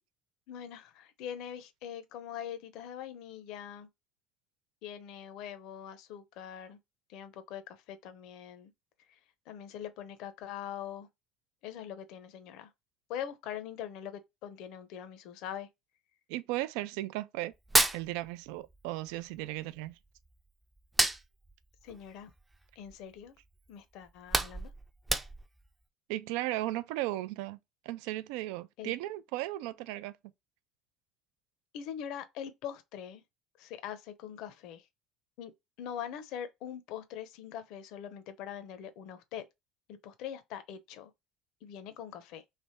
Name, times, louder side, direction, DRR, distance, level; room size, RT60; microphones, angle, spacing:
voice 1, 0.5-3.9 4.8-6.8 7.1-8.7 9.1-9.2 9.5-11.1 11.6-12.7 13.1-15.7 21.8-22.3 22.8-23.3 23.7-24.7 28.8-28.9 31.7-33.2 33.6-34.9 35.4-35.5 35.8-39.5 40.0-41.1 41.6-42.4, left 9 dB, 70° left, 0.6 m, -42 dB
voice 2, 16.3-17.5 17.9-20.0 26.1-27.6 27.8-30.1, right 16 dB, 85° right, 0.3 m, -36 dB
Hands, 17.5-18.8 19.1-20.4 20.8-23.1 23.5-23.7 24.0-25.7, right 2 dB, 10° right, 0.4 m, -30 dB
3.3 x 3.0 x 4.3 m
cardioid pair, 135°, 0 cm